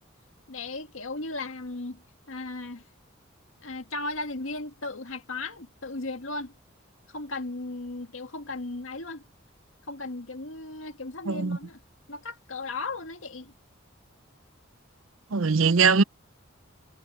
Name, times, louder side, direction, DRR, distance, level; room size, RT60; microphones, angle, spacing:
voice 1, 0.5-2.0 2.3-2.8 3.6-6.5 7.1-9.2 9.9-11.8 12.1-13.5, left 2 dB, 85° left, 1.9 m, -36 dB
voice 2, 11.3-11.6 15.3-16.0, right 5 dB, 85° right, 0.7 m, -21 dB
head